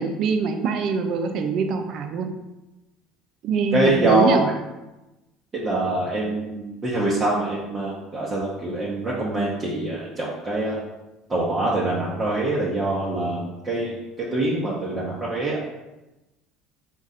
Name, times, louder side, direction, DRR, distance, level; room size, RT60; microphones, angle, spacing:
voice 1, 0.0-2.3 3.4-4.5, right 4 dB, 60° right, 6 dB, 0.5 m, -23 dB
voice 2, 3.7-4.4 5.5-10.8 11.3-15.8, right 1 dB, 25° right, -6 dB, 0.9 m, -24 dB
4.7 x 2.5 x 4.1 m, 1.0 s
supercardioid pair, 105°, 0 cm